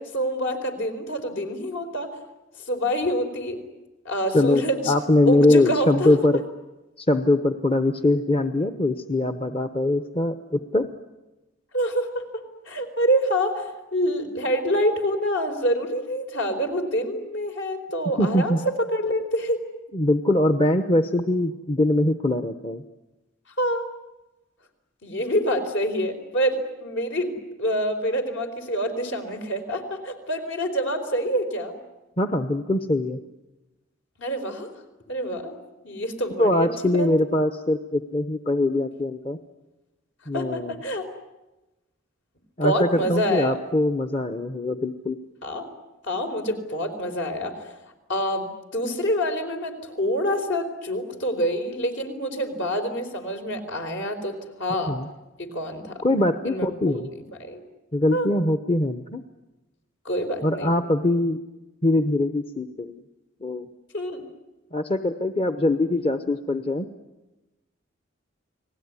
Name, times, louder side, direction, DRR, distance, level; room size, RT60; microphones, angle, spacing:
voice 1, 0.0-2.1 2.6-3.6 4.0-4.9 5.3-6.2 11.7-19.6 23.6-23.9 25.0-31.8 34.2-34.7 35.1-35.6 35.8-37.1 40.3-41.1 42.6-43.6 45.4-45.7 46.0-47.7 48.1-55.0 55.4-56.0 56.4-57.6 58.1-58.3 60.0-60.7 63.9-64.2, equal, 65° left, 5 dB, 4.3 m, -27 dB
voice 2, 4.3-6.4 7.0-10.8 18.2-18.6 19.9-22.8 32.2-33.2 36.4-39.4 40.3-40.7 42.6-45.2 54.9-55.1 56.0-57.1 57.9-59.2 60.4-61.4 61.8-63.0 63.4-63.7 64.7-66.9, left 1 dB, 25° left, 9 dB, 0.9 m, -22 dB
30.0 x 20.0 x 9.7 m, 1.0 s
head